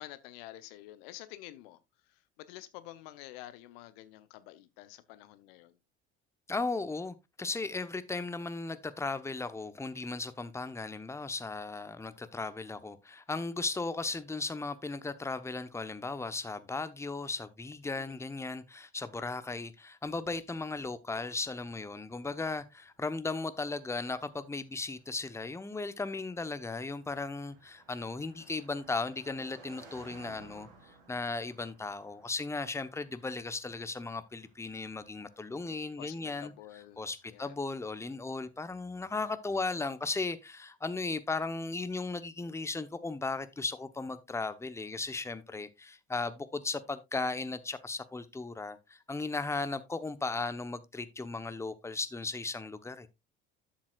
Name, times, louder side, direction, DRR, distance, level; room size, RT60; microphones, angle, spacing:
voice 1, 0.0-1.8 2.1-5.8 18.0-18.2 28.4-28.6 36.0-37.0 37.3-37.6 45.5-45.6, left 15 dB, 65° left, 0.9 m, -49 dB
voice 2, 6.5-30.7 31.1-36.5 37.0-53.1, left 3 dB, 10° left, 0.9 m, -36 dB
Car passing by, 22.6-38.2, right 4 dB, 70° right, 2.7 m, -60 dB
12.5 x 7.3 x 2.4 m
figure-of-eight pair, 60°, 32 cm